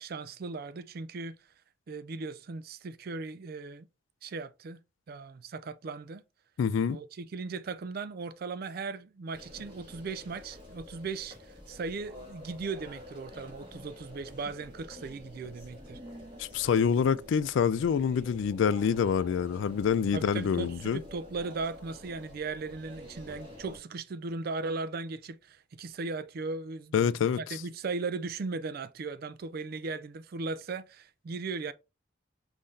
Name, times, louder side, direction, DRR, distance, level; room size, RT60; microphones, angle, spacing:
voice 1, 0.0-1.4 1.9-3.9 4.2-4.8 5.1-6.2 6.9-16.0 20.1-31.7, right 4 dB, 50° right, 0.4 m, -37 dB
voice 2, 6.6-7.0 16.4-21.0 26.9-27.4, left 7 dB, 70° left, 0.3 m, -26 dB
sound 1, 9.3-23.8, left 1 dB, 25° right, 1.5 m, -48 dB
5.5 x 2.7 x 3.2 m
head